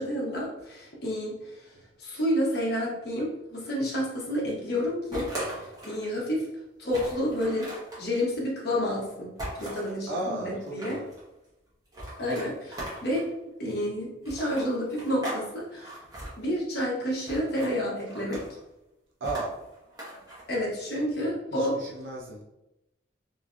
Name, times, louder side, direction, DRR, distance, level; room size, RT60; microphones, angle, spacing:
voice 1, 0.0-1.4 2.0-6.4 6.8-7.7 8.0-11.0 12.2-13.3 13.6-16.0 16.4-18.4 20.5-21.8, equal, 55° left, -3 dB, 0.9 m, -30 dB
sound 1, 5.1-6.0 6.5-6.6 6.9-8.0 9.4-9.9 10.5-11.2 11.9-13.3 14.2-15.4 15.7-16.3 17.3-17.7 18.1-18.6 19.2-20.4, right 1 dB, 20° right, 1.0 m, -38 dB
voice 2, 10.1-11.1 19.2-19.5 20.1-20.3 21.5-22.4, right 2 dB, 80° right, -3 dB, 0.6 m, -35 dB
3.2 x 3.1 x 2.5 m, 0.94 s
head